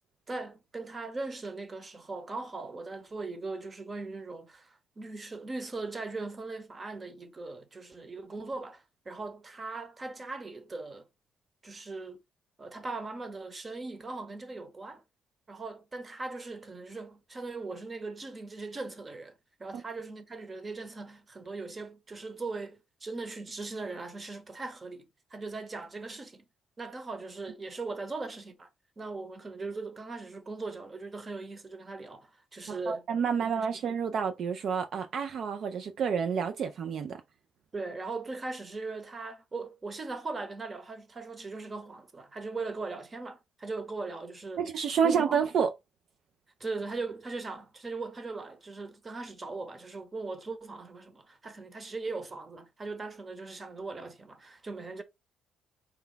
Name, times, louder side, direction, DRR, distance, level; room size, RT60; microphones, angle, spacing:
voice 1, 0.3-11.1 11.6-12.2 12.6-15.0 15.5-26.4 26.8-28.7 29.0-33.1 33.4-33.5 37.7-44.6 45.0-45.4 46.6-55.0, right 3 dB, 30° right, 0.9 m, -39 dB
voice 2, 32.7-37.2 44.6-45.7, right 7 dB, 65° right, 0.4 m, -29 dB
4.3 x 2.3 x 3.8 m
cardioid pair, 90°, 0 cm